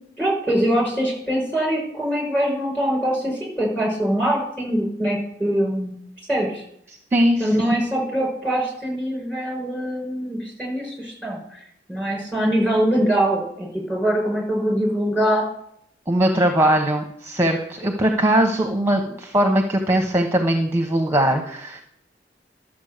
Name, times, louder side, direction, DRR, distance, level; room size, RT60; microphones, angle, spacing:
voice 1, 0.2-6.0 6.3-6.6 7.4-11.4 11.9-15.4, right 1 dB, 10° left, -2 dB, 5.4 m, -23 dB
voice 2, 7.1-7.5 16.1-21.8, right 1 dB, 15° right, 3 dB, 1.0 m, -20 dB
12.5 x 7.3 x 6.6 m, 0.71 s
head